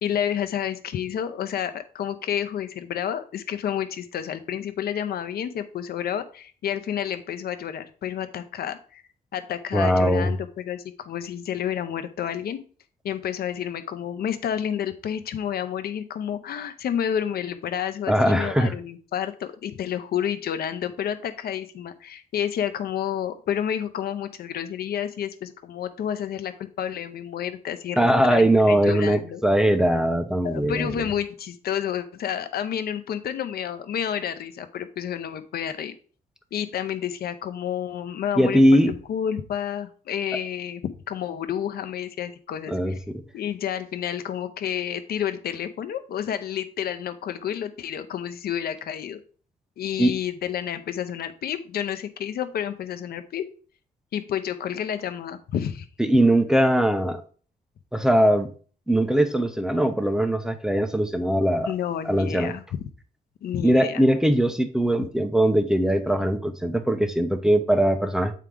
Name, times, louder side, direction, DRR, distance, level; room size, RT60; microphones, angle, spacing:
voice 1, 0.0-9.0 9.3-12.6 13.0-29.4 30.4-35.9 36.5-38.8 39.1-40.8 41.1-43.0 43.3-49.2 49.8-53.4 54.1-55.9 61.7-62.8 63.4-64.0, left 9 dB, 80° left, 10 dB, 0.7 m, -30 dB
voice 2, 9.7-10.3 18.1-18.7 28.0-31.0 38.4-38.9 42.7-43.2 50.0-50.1 56.0-57.2 57.9-58.5 58.9-61.7 62.0-62.6 63.6-68.3, right 1 dB, 5° right, 8 dB, 0.6 m, -21 dB
8.1 x 4.7 x 3.8 m, 0.41 s
cardioid pair, 120°, 16 cm